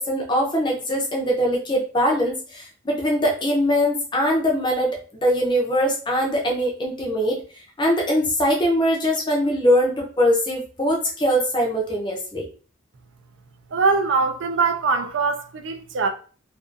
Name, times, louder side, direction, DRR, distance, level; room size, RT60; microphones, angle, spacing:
voice 1, 0.0-7.4 7.8-12.5, equal, 20° left, 0.5 m, -22 dB
voice 2, 13.7-16.1, right 4 dB, 60° right, 0.4 m, -22 dB
2.4 x 2.4 x 2.5 m
head